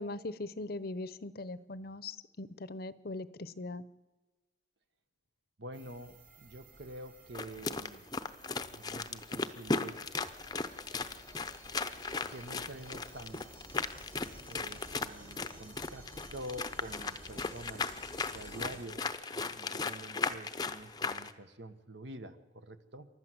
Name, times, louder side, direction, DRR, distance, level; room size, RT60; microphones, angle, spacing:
voice 1, 0.0-3.8, left 2 dB, 50° left, 16 dB, 0.8 m, -40 dB
voice 2, 5.6-8.0 8.7-10.1 12.3-13.5 14.5-18.0 18.3-19.1 19.3-23.1, right 1 dB, 65° right, 10 dB, 1.4 m, -47 dB
sound 1, 5.7-18.8, right 2 dB, 45° right, 3.7 m, -55 dB
sound 2, 7.3-21.3, left 4 dB, 20° left, 0.7 m, -37 dB
28.5 x 12.5 x 7.8 m, 1.2 s
head